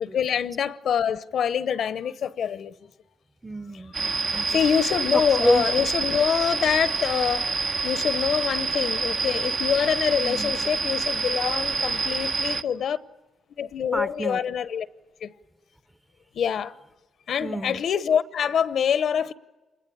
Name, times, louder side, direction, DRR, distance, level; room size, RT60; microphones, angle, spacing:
voice 1, 0.0-2.8 4.5-7.6 7.8-13.0 13.6-14.9 15.2-15.3 16.3-16.8 17.3-19.3, left 8 dB, 70° left, 0.8 m, -25 dB
voice 2, 3.4-4.6 5.1-5.6 10.2-10.5 13.9-14.4 17.4-17.8, right 1 dB, 10° right, 0.9 m, -29 dB
sound 1, 3.9-12.6, right 4 dB, 50° right, 1.1 m, -27 dB
26.0 x 20.5 x 10.0 m
cardioid pair, 85°, 0 cm